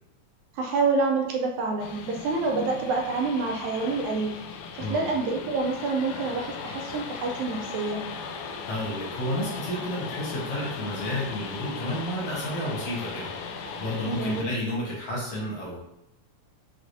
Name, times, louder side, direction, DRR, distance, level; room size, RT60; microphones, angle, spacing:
voice 1, 0.5-4.3 4.7-8.0 14.1-14.6, right 3 dB, 75° right, 0 dB, 1.9 m, -27 dB
sound 1, 1.8-14.4, left 5 dB, 80° left, 1.9 m, -38 dB
voice 2, 8.7-13.3 13.8-15.8, left 1 dB, 65° left, -6 dB, 1.9 m, -31 dB
6.2 x 3.0 x 2.6 m, 0.82 s
omnidirectional pair, 3.6 m